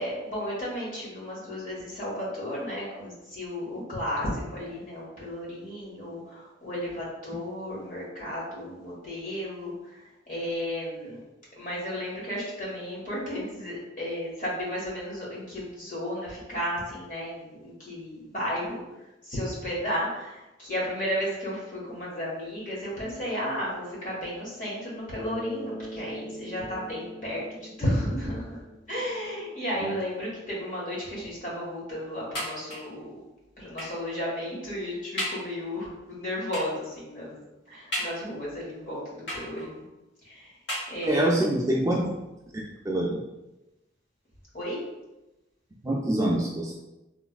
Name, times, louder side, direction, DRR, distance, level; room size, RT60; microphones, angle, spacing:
voice 1, 0.0-11.2 11.6-18.8 19.2-28.6 28.9-33.2 33.6-37.4 37.7-39.8 40.2-40.5 40.9-41.5 44.5-44.8, equal, 45° left, -5 dB, 1.4 m, -33 dB
Bass guitar, 25.2-29.4, equal, 15° left, 1.2 m, -42 dB
sound 1, 32.3-33.0 33.8-34.1 34.6-34.7 35.2-35.5 36.5-36.9 37.9-38.5 39.3-39.9 40.7-41.4 42.2-42.3 42.6-42.7, equal, 65° left, 1.2 m, -35 dB
voice 2, 41.0-42.1 42.5-43.1 45.8-46.7, right 1 dB, 15° right, -3 dB, 0.3 m, -25 dB
3.3 x 3.1 x 2.3 m, 0.98 s
head